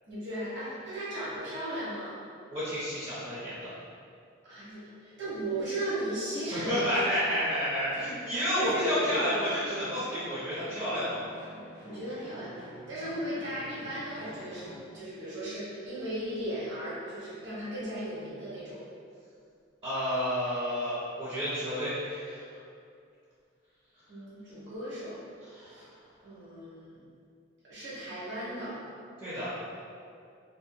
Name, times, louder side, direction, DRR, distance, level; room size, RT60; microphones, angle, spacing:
voice 1, 0.0-2.2 4.4-7.0 8.5-9.3 11.8-12.5 12.9-18.8 24.1-25.2 25.7-25.8 26.2-27.0 27.6-28.8, right 1 dB, 60° right, -10 dB, 0.9 m, -36 dB
voice 2, 2.5-3.7 6.4-11.2 19.8-22.6 25.4-25.9 29.2-29.5, equal, 30° right, -10 dB, 0.5 m, -31 dB
sound 1, 8.5-14.9, equal, 80° right, 1.1 m, -49 dB
2.6 x 2.1 x 2.6 m, 2.3 s
head